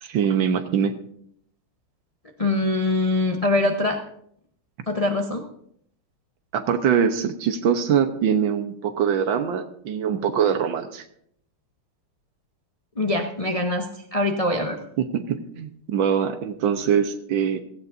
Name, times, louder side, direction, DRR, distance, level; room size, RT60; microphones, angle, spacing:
voice 1, 0.0-1.0 6.5-11.0 15.0-17.6, right 7 dB, 70° right, 8 dB, 1.6 m, -23 dB
voice 2, 2.4-4.0 4.9-5.4 13.0-14.8, left 2 dB, 40° left, 2 dB, 0.5 m, -23 dB
16.5 x 15.0 x 2.6 m, 0.68 s
omnidirectional pair, 2.3 m